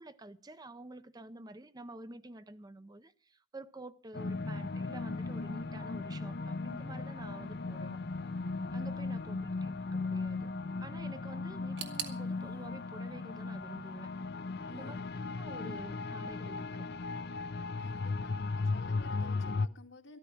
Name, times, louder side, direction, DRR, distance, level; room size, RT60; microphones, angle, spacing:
voice 1, 0.0-8.0 8.7-10.5 10.8-14.1 14.7-15.0 15.3-16.9, right 2 dB, 20° right, 0.6 m, -49 dB
sound 1, 4.1-19.7, left 3 dB, 55° left, 0.6 m, -37 dB
sound 2, 11.8-14.6 14.9-15.7 16.0-16.1 17.0-17.1, right 8 dB, 65° right, 1.8 m, -46 dB
voice 2, 14.7-15.3 17.8-20.2, left 3 dB, 85° left, 2.2 m, -54 dB
13.5 x 13.0 x 5.9 m
head